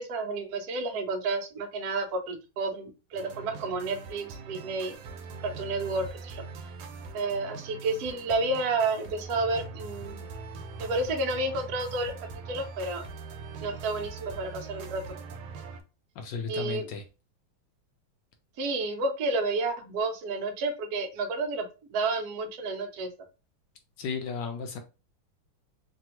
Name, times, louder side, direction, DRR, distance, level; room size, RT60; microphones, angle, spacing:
voice 1, 0.0-4.9 5.4-6.4 7.1-10.2 10.8-12.1 12.5-13.0 13.6-15.0 16.5-16.9 18.6-23.1, right 3 dB, 65° right, 3 dB, 1.0 m, -30 dB
sound 1, 3.1-15.8, right 4 dB, 85° right, 1.4 m, -42 dB
voice 2, 16.2-17.0 24.0-24.8, left 5 dB, 75° left, 5 dB, 1.1 m, -34 dB
3.3 x 2.3 x 2.9 m, 0.31 s
omnidirectional pair, 2.2 m